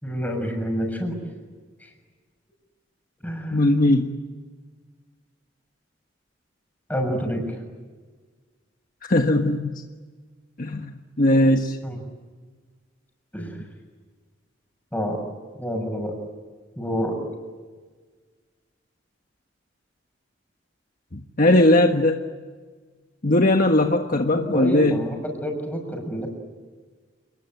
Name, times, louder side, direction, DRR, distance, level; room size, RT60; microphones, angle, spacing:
voice 1, 0.0-1.2 3.2-3.6 6.9-7.6 11.8-12.0 13.3-13.6 14.9-15.2 15.6-16.1 16.8-17.2 24.3-26.3, equal, 10° left, 2 dB, 6.9 m, -28 dB
voice 2, 3.5-4.1 9.1-9.8 10.6-10.9 11.2-11.8 21.1-22.2 23.2-25.0, left 1 dB, 45° left, 4 dB, 1.4 m, -19 dB
29.0 x 21.0 x 9.1 m, 1.5 s
head